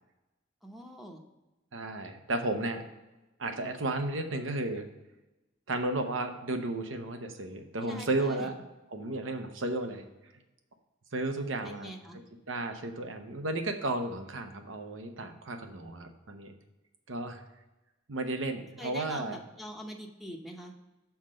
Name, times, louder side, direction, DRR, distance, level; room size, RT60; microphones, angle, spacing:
voice 1, 0.6-1.2 7.9-8.5 11.6-12.2 18.8-20.7, equal, ahead, 2 dB, 0.7 m, -44 dB
voice 2, 1.7-2.8 3.4-4.9 5.7-8.5 8.9-10.0 11.1-11.9 12.5-16.5 17.1-17.4 18.1-19.4, right 2 dB, 75° right, 6 dB, 0.9 m, -33 dB
5.8 x 4.4 x 6.3 m, 1.0 s
head